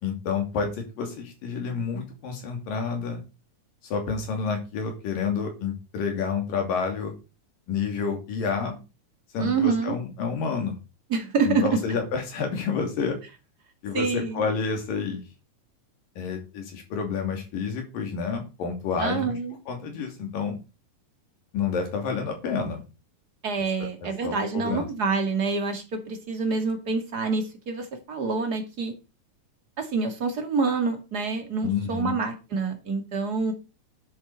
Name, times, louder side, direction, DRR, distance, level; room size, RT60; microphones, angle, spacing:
voice 1, 0.0-3.2 3.9-7.1 7.7-8.8 9.3-10.8 11.4-13.2 13.8-15.2 16.2-19.4 19.7-20.6 21.5-22.8 23.8-24.9 31.6-32.1, left 5 dB, 85° left, 4 dB, 4.4 m, -29 dB
voice 2, 9.4-10.0 11.1-11.8 13.9-14.5 19.0-19.6 23.4-28.9 29.8-33.5, right 4 dB, 30° right, 5 dB, 2.3 m, -27 dB
11.0 x 9.1 x 4.2 m, 0.29 s
omnidirectional pair, 3.8 m